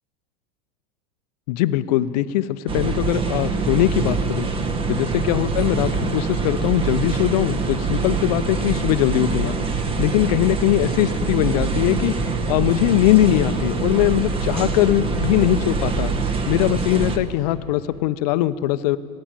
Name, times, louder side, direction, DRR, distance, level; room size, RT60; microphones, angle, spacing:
voice 1, 1.5-4.5 4.9-9.6 10.0-12.1 12.5-16.1 16.5-19.0, left 14 dB, 65° left, 14 dB, 0.6 m, -21 dB
sound 1, 2.7-17.2, right 4 dB, 25° right, 1.1 m, -24 dB
17.0 x 8.7 x 8.8 m, 2.7 s
hypercardioid pair, 110°, 21 cm